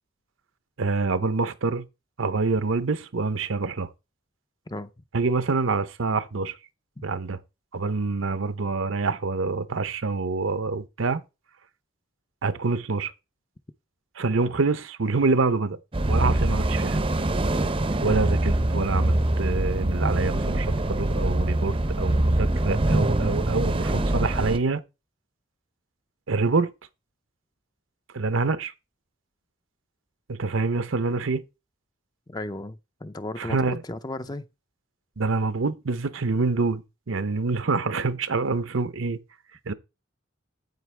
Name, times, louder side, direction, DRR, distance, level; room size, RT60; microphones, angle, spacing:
voice 1, 0.8-1.8 2.2-3.9 5.1-6.6 7.0-7.4 7.7-11.2 12.4-13.1 14.2-15.8 16.1-17.0 18.0-24.8 26.3-26.7 28.1-28.7 30.3-31.4 33.4-33.8 35.2-39.2 39.7-39.8, right 3 dB, 75° right, 0.7 m, -26 dB
sound 1, 15.9-24.6, right 1 dB, 25° right, 0.6 m, -24 dB
voice 2, 32.3-34.5, left 2 dB, 20° left, 0.5 m, -35 dB
9.4 x 7.9 x 3.3 m
head